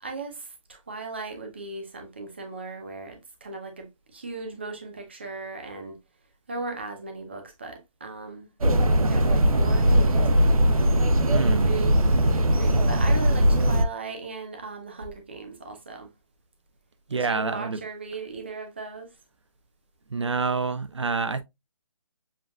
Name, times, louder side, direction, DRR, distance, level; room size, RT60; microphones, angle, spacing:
voice 1, 0.0-6.0 6.5-8.5 8.9-10.8 11.4-16.1 17.1-19.2, right 3 dB, 20° right, 0.7 m, -37 dB
sound 1, 8.6-13.8, equal, 85° right, 0.9 m, -20 dB
voice 2, 11.3-11.7 17.1-17.8 20.1-21.4, right 4 dB, 55° right, 0.5 m, -27 dB
7.2 x 2.5 x 2.4 m
hypercardioid pair, 180°, 18 cm